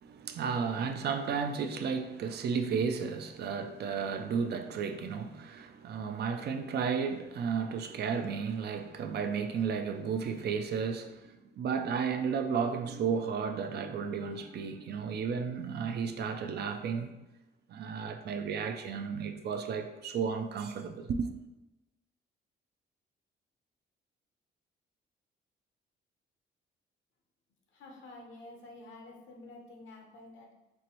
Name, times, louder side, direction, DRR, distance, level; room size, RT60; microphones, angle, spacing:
voice 1, 0.0-17.1 17.7-21.3, right 6 dB, 55° right, 0.4 m, -33 dB
voice 2, 27.7-30.5, left 2 dB, 70° left, 0.9 m, -50 dB
4.4 x 2.5 x 3.0 m
cardioid pair, 90°, 20 cm